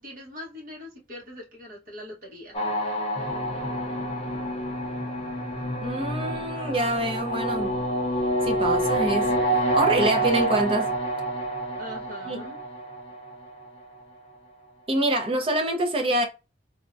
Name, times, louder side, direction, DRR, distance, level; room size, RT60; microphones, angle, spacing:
voice 1, 0.0-2.6 11.8-12.6, left 1 dB, 50° right, 1.1 m, -42 dB
sound 1, 2.5-13.7, right 1 dB, 30° left, 0.6 m, -27 dB
voice 2, 5.8-7.8 8.4-9.3 9.7-10.9 12.3-12.4 14.9-16.2, right 1 dB, 30° right, 0.6 m, -25 dB
3.5 x 2.2 x 2.4 m
head